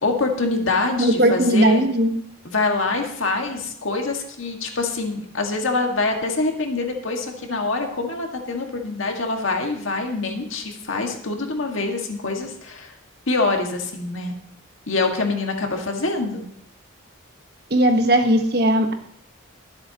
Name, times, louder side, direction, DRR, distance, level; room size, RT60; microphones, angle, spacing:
voice 1, 0.0-1.9 2.5-12.9 13.3-14.3 14.9-16.5, left 3 dB, 70° left, 2 dB, 1.8 m, -25 dB
voice 2, 1.0-2.1 17.7-18.9, right 1 dB, 50° right, 5 dB, 1.3 m, -18 dB
22.0 x 8.0 x 2.9 m, 0.70 s
head